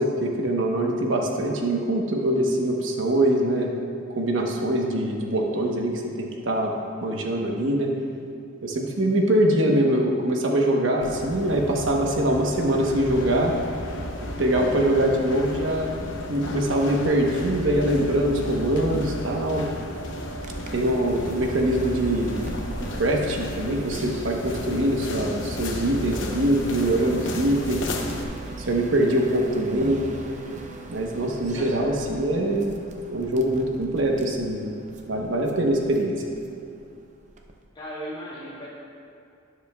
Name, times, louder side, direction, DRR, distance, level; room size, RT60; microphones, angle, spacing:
voice 1, 0.0-3.7 4.1-6.7 7.0-7.9 8.6-13.5 14.4-16.0 16.3-19.7 20.7-22.4 23.0-27.9 28.7-30.1 30.9-32.7 33.1-34.7 35.0-36.2, right 1 dB, 75° right, 0 dB, 1.0 m, -23 dB
sound 1, 11.0-28.2, left 1 dB, 70° left, 0.9 m, -33 dB
sound 2, 20.4-37.6, right 2 dB, 40° right, 0.6 m, -40 dB
voice 2, 25.7-26.2 31.5-32.1 37.7-38.7, equal, 25° left, -6 dB, 2.1 m, -38 dB
12.0 x 10.0 x 2.3 m, 2.5 s
head